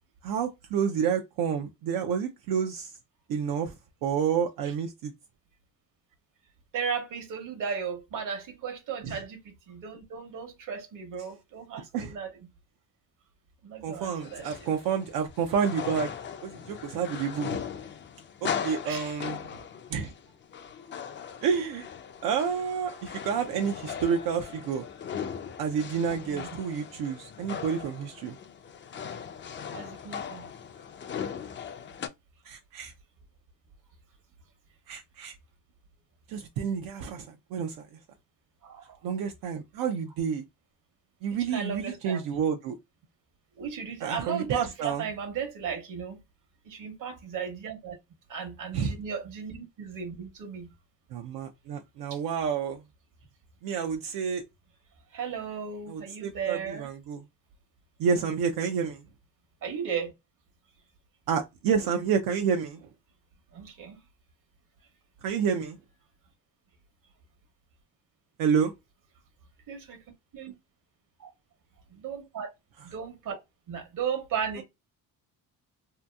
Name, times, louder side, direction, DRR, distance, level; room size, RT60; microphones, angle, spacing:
voice 1, 0.2-2.9 3.3-3.7 4.0-5.1 9.0-9.2 11.9-12.1 13.8-16.1 16.4-17.6 18.4-19.4 19.9-20.1 21.4-21.9 22.2-24.8 25.6-28.4 32.5-32.9 34.9-35.3 36.3-37.9 39.0-40.4 41.2-42.7 44.0-45.0 48.7-48.9 51.1-52.8 53.6-54.4 55.9-57.2 58.0-59.0 61.3-62.9 65.2-65.8 68.4-68.7, right 7 dB, 80° right, 0.6 m, -29 dB
voice 2, 6.7-12.5 13.6-14.7 18.8-19.1 26.2-26.5 29.7-30.5 38.6-39.0 41.5-42.2 43.6-46.2 46.6-48.0 48.3-50.7 52.1-52.2 55.1-56.9 59.6-60.1 63.5-64.0 69.7-70.0 70.3-70.5 71.2-71.3 71.9-72.5 72.8-73.4 73.7-74.6, right 7 dB, 65° right, 1.1 m, -35 dB
sound 1, 14.2-32.1, left 7 dB, 35° left, 0.4 m, -39 dB
2.8 x 2.5 x 2.2 m
cardioid pair, 95°, 35 cm